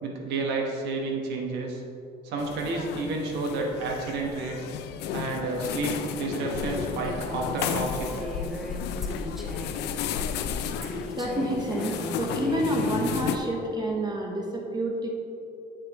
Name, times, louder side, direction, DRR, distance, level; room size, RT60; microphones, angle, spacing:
voice 1, 0.0-1.8 2.2-4.7 5.1-8.1, right 3 dB, 85° right, 0 dB, 1.2 m, -30 dB
sound 1, 2.4-13.4, left 7 dB, 80° left, 0.5 m, -33 dB
Female speech woman speaking, 6.6-9.9 10.8-13.0, equal, ahead, 1.2 m, -38 dB
voice 2, 11.2-15.1, right 1 dB, 25° right, 0 dB, 0.9 m, -28 dB
8.2 x 6.5 x 3.0 m, 2.6 s
cardioid pair, 110°, 17 cm